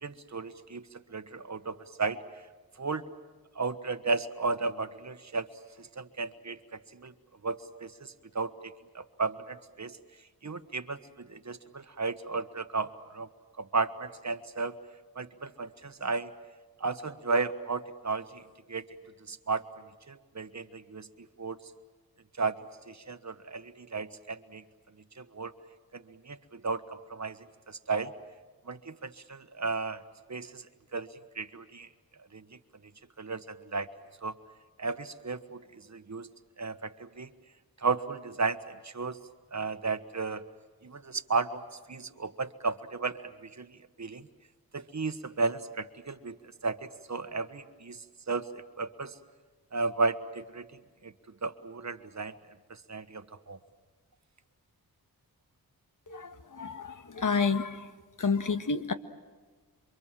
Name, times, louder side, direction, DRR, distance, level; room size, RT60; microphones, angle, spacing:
voice 1, 0.0-2.2 2.8-3.1 3.5-5.5 5.8-6.6 6.9-7.1 7.4-10.0 10.4-13.3 13.6-14.8 15.1-16.3 16.8-18.4 18.7-18.9 19.3-19.6 20.1-21.1 21.4-21.6 22.4-24.6 25.2-25.5 25.9-26.8 27.1-28.1 28.7-30.0 30.3-30.7 30.9-31.1 31.3-31.9 32.3-32.4 33.2-33.9 34.2-34.4 34.8-36.3 36.6-37.3 37.8-39.2 39.5-40.4 40.8-41.6 41.9-44.3 44.7-46.4 46.6-48.5 48.8-49.2 49.7-51.1 51.4-52.3 52.7-53.6, right 4 dB, 45° right, 10 dB, 1.4 m, -34 dB
voice 2, 56.1-57.9 58.2-58.9, left 5 dB, 55° left, 9 dB, 1.8 m, -30 dB
28.5 x 24.5 x 7.6 m, 1.4 s
wide cardioid pair, 75°, 37 cm